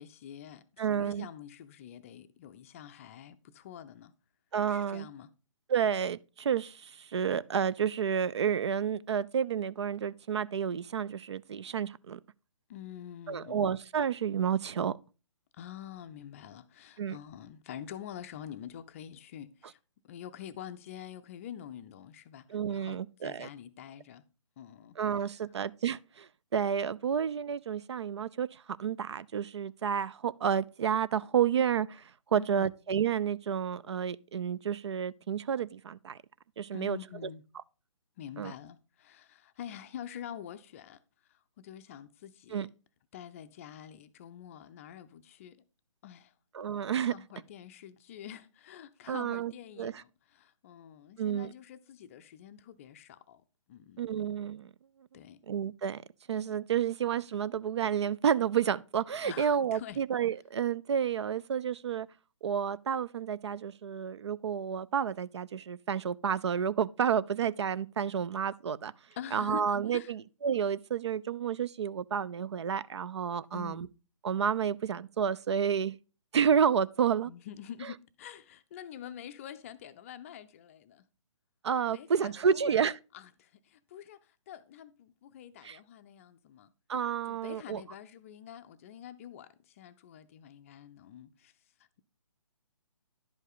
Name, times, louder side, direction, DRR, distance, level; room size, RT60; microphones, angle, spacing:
voice 1, 0.0-4.1 4.7-5.3 12.7-13.8 15.5-19.8 20.0-24.2 24.6-25.0 32.3-32.7 36.7-37.4 38.2-41.0 41.3-42.7 43.1-45.6 46.0-46.3 47.0-53.4 53.7-54.0 55.1-55.4 59.2-60.0 69.2-69.7 69.9-70.1 73.5-73.8 77.3-81.0 81.9-82.9 83.1-86.7 87.3-91.5, left 10 dB, 25° left, 0.4 m, -46 dB
voice 2, 0.8-1.3 4.5-5.1 5.7-12.2 13.3-15.0 17.0-17.2 22.5-23.5 25.0-36.2 36.6-37.0 38.4-38.5 42.5-42.7 46.5-47.1 49.1-49.5 49.8-49.9 51.2-51.5 54.0-54.7 55.5-56.0 56.3-62.1 62.4-68.9 69.3-73.9 74.2-76.0 76.3-77.3 81.6-83.0 85.6-85.8 86.9-87.8, right 8 dB, 60° right, 0.4 m, -30 dB
10.5 x 5.3 x 3.8 m
figure-of-eight pair, 140°, 16 cm